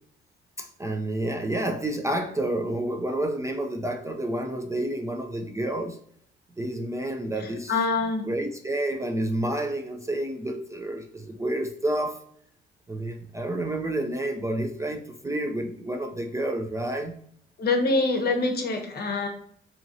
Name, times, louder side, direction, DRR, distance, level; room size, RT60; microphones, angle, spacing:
voice 1, 0.6-6.0 6.6-7.7 8.3-12.2 12.9-17.2, right 1 dB, 15° right, 3 dB, 0.3 m, -29 dB
voice 2, 7.4-8.3 17.6-19.3, left 3 dB, 55° left, 4 dB, 0.8 m, -25 dB
2.8 x 2.6 x 2.6 m, 0.64 s
cardioid pair, 90°, 20 cm